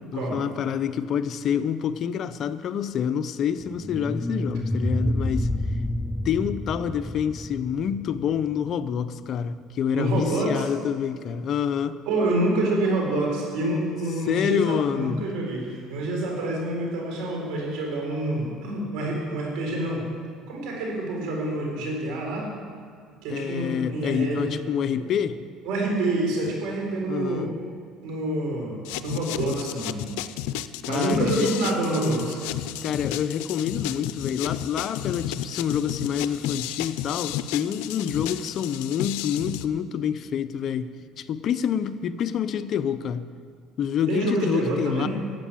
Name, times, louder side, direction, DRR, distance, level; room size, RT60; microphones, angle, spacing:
voice 1, 0.1-5.6 6.2-12.0 14.3-15.3 23.3-25.4 27.1-27.5 30.8-31.5 32.8-43.3 43.8-45.1, left 8 dB, 50° left, 12 dB, 0.6 m, -27 dB
sound 1, 3.6-8.7, left 1 dB, 10° left, 0.5 m, -29 dB
voice 2, 9.9-10.7 12.1-20.1 20.5-22.5 23.2-24.5 25.0-25.1 25.6-27.5 28.0-30.1 30.9-32.4 44.1-45.1, right 2 dB, 80° right, -1 dB, 4.3 m, -27 dB
sound 2, 28.8-39.7, left 12 dB, 90° left, 0.5 m, -32 dB
13.0 x 8.2 x 8.7 m, 2.2 s
cardioid pair, 120°, 0 cm